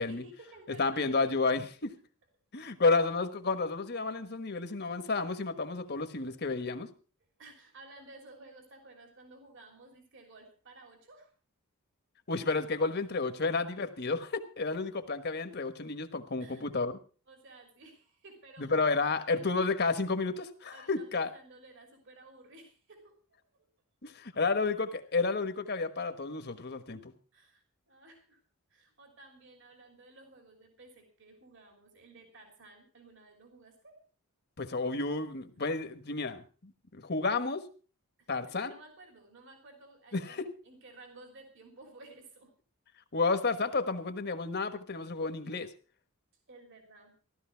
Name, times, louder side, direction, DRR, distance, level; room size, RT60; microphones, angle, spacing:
voice 1, 0.0-1.3 2.9-3.0 7.4-11.3 16.4-16.7 17.3-19.4 20.7-23.2 23.5-23.7 27.3-28.4 28.7-34.0 35.5-35.6 38.2-42.5 46.5-47.1, right 2 dB, 60° right, 4 dB, 3.2 m, -55 dB
voice 2, 0.7-1.9 2.5-6.9 12.3-17.0 18.6-21.3 24.0-27.1 34.6-37.6 38.3-38.7 40.1-40.5 43.1-45.7, left 3 dB, 50° left, 9 dB, 1.3 m, -31 dB
15.0 x 12.5 x 4.6 m, 0.38 s
head